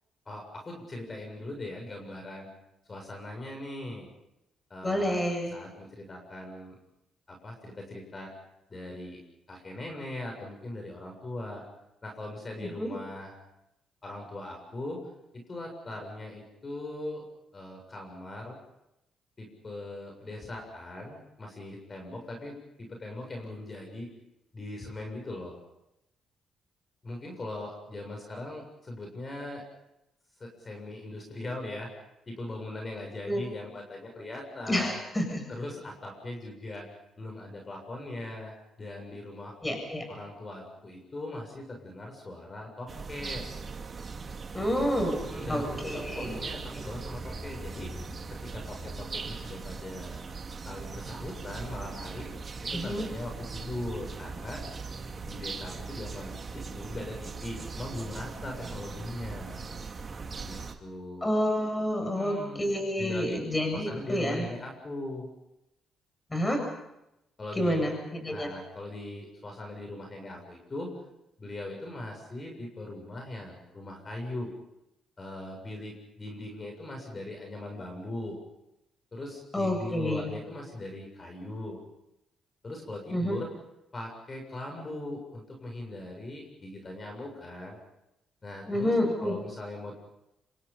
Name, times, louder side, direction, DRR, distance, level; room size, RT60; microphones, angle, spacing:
voice 1, 0.3-2.5 2.9-4.1 4.7-6.8 7.3-8.3 8.7-9.2 9.5-11.6 12.0-13.4 14.0-15.0 15.3-17.2 17.5-18.6 19.4-24.1 24.5-25.6 27.0-29.6 30.4-31.9 32.3-35.0 35.5-36.9 37.2-39.6 40.1-43.5 45.3-45.7 45.9-47.9 48.4-50.2 50.6-52.3 52.6-54.6 55.2-59.6 60.3-61.3 62.0-63.4 63.7-65.3 67.4-67.9 68.3-70.9 71.4-74.5 75.2-78.4 79.1-81.8 82.6-83.5 83.9-87.8 88.4-88.9 89.2-89.9, left 1 dB, 30° left, 2 dB, 7.3 m, -40 dB
voice 2, 4.8-5.5 12.6-12.9 33.3-33.4 34.7-35.5 39.6-40.1 44.5-45.2 45.5-46.4 46.7-46.8 52.7-53.0 61.2-64.5 66.3-66.6 67.5-68.5 79.5-80.3 83.1-83.4 88.7-89.4, equal, 15° left, 4 dB, 7.8 m, -29 dB
sound 1, 42.9-60.7, right 4 dB, 35° right, 2.7 m, -39 dB
27.5 x 25.0 x 5.6 m, 0.87 s
cardioid pair, 90°, 0 cm